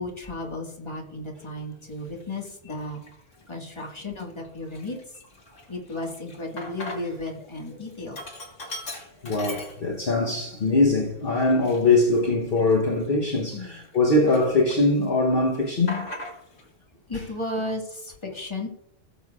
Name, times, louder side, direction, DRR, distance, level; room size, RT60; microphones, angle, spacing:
voice 1, 0.0-3.0 3.5-5.2 5.7-8.2 13.5-13.8 17.1-18.7, left 2 dB, 25° left, 1.8 m, -34 dB
Sink (filling or washing), 2.0-2.2 2.9-3.4 3.8-3.9 4.2-7.3 7.6-10.2 10.6-10.7 11.4-14.0 14.3-15.0 15.3-16.7, left 1 dB, 90° left, 2.2 m, -40 dB
voice 2, 8.9-16.1, left 2 dB, 50° left, 1.2 m, -22 dB
16.5 x 7.4 x 2.4 m
omnidirectional pair, 1.2 m